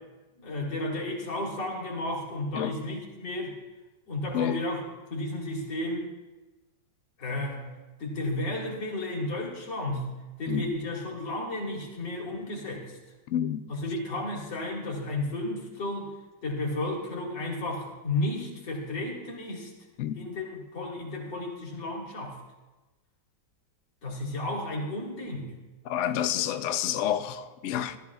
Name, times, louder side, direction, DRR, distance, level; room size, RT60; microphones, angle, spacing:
voice 1, 0.4-3.6 4.1-4.8 5.1-6.1 7.2-7.7 8.0-10.1 10.4-13.0 13.7-16.1 16.4-19.7 20.1-22.4 24.0-25.5, left 1 dB, 70° left, 2.8 m, -33 dB
voice 2, 13.3-13.6 20.0-20.2 25.8-28.0, left 10 dB, 85° left, 0.6 m, -29 dB
14.5 x 13.5 x 2.4 m
omnidirectional pair, 2.0 m